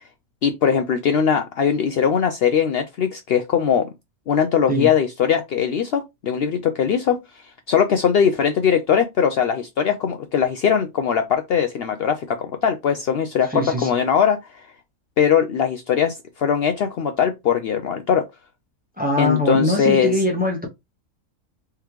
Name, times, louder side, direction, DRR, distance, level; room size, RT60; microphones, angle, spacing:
voice 1, 0.4-3.9 4.3-14.6 15.2-18.2 19.2-20.1, left 7 dB, 85° left, 0.5 m, -20 dB
voice 2, 13.5-13.9 19.0-20.7, left 1 dB, 10° right, 0.7 m, -22 dB
3.6 x 3.3 x 3.0 m
omnidirectional pair, 1.6 m